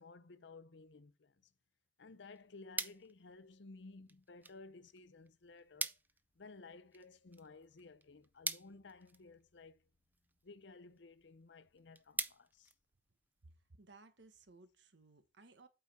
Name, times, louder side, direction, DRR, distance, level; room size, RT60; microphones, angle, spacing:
voice 1, 0.0-1.5 2.0-5.9 6.4-9.9 10.4-12.7, left 3 dB, 70° left, 0.7 m, -56 dB
sound 1, 2.0-13.5, right 3 dB, 10° right, 0.4 m, -47 dB
voice 2, 13.4-15.7, right 3 dB, 70° right, 1.2 m, -61 dB
8.5 x 4.9 x 4.1 m
head